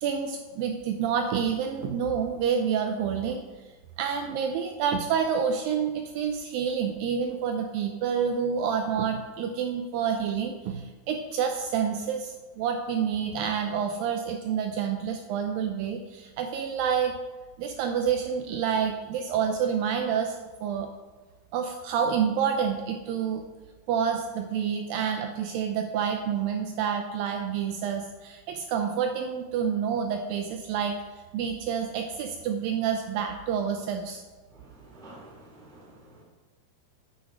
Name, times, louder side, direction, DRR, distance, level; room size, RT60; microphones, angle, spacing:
voice 1, 0.0-3.5 4.0-17.2 17.6-20.9 21.5-23.4 23.9-34.2, right 7 dB, 85° right, 5 dB, 2.1 m, -28 dB
voice 2, 34.5-36.2, right 1 dB, ahead, -3 dB, 1.0 m, -50 dB
9.1 x 6.4 x 6.1 m, 1.2 s
omnidirectional pair, 4.6 m